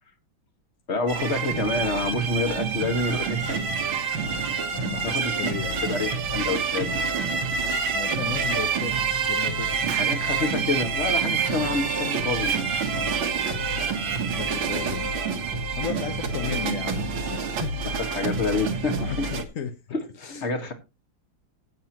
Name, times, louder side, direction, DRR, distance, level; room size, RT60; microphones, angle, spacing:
voice 1, 0.9-3.7 5.0-5.6 5.8-7.4 10.0-13.2 18.1-19.3 19.9-20.7, left 3 dB, 35° left, 1.9 m, -28 dB
sound 1, 1.1-19.4, right 5 dB, 70° right, 2.1 m, -27 dB
voice 2, 4.0-5.9 7.9-9.9 14.2-15.2 15.8-18.0 19.1-19.8 20.2-20.5, left 8 dB, 55° left, 1.0 m, -35 dB
Explosion, 9.9-10.2 12.4-12.8, right 11 dB, 90° right, 1.6 m, -37 dB
17.0 x 7.4 x 3.0 m
omnidirectional pair, 2.2 m